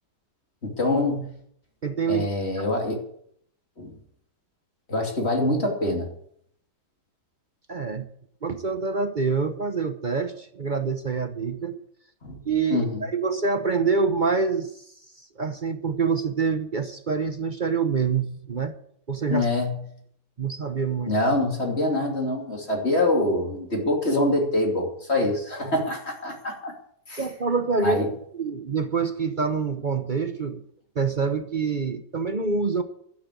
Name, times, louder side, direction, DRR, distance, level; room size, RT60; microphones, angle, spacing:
voice 1, 0.6-1.3 2.1-3.0 3.8-3.9 4.9-6.1 12.2-12.3 12.7-13.0 19.3-19.8 21.1-26.7 27.1-27.2 27.8-28.1, left 2 dB, 35° left, 1 dB, 3.0 m, -25 dB
voice 2, 1.8-2.3 2.6-2.7 7.7-8.1 8.4-11.8 12.4-14.9 15.2-18.7 19.1-19.5 20.4-21.1 27.2-28.0 28.3-30.6 30.9-32.8, right 5 dB, 40° right, 9 dB, 0.8 m, -26 dB
12.0 x 9.8 x 8.3 m, 0.67 s
omnidirectional pair, 1.8 m